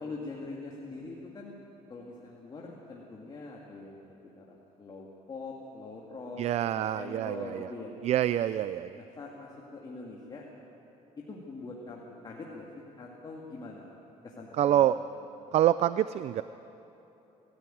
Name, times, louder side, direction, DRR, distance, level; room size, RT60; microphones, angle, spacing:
voice 1, 0.0-1.6 1.9-6.4 6.7-7.9 9.0-10.4 11.2-13.8 14.2-14.9, left 3 dB, 30° left, -3 dB, 2.5 m, -43 dB
voice 2, 6.4-7.7 8.0-9.0 14.6-15.0 15.5-16.4, right 12 dB, 55° right, 14 dB, 0.4 m, -26 dB
21.5 x 14.0 x 9.3 m, 3.0 s
cardioid pair, 115°, 13 cm